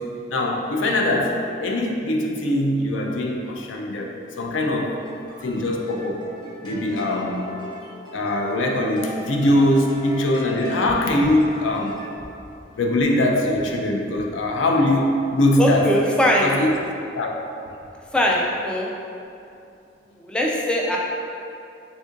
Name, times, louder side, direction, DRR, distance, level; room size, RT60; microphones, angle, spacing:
voice 1, 0.0-5.0 5.4-6.2 6.6-7.5 8.1-12.0 12.8-15.9 16.4-16.7 17.1-17.3, left 1 dB, 75° left, 1 dB, 0.4 m, -22 dB
sound 1, 4.9-12.2, left 1 dB, 25° left, 0.8 m, -39 dB
voice 2, 15.6-16.5 18.1-18.9 20.3-21.0, left 1 dB, 5° left, -2 dB, 0.3 m, -20 dB
3.4 x 2.5 x 3.7 m, 2.6 s
head